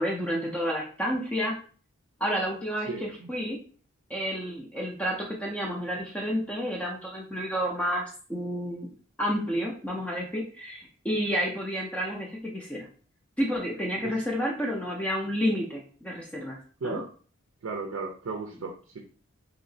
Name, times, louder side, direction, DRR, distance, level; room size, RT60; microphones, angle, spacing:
voice 1, 0.0-1.6 2.2-3.6 4.1-8.9 9.2-12.9 13.4-16.6 16.8-17.0, equal, 5° left, -2 dB, 0.4 m, -30 dB
voice 2, 2.9-3.3 14.0-14.1 16.8-17.1 17.6-19.0, right 3 dB, 80° right, 3 dB, 0.5 m, -35 dB
3.0 x 2.8 x 2.6 m, 0.42 s
head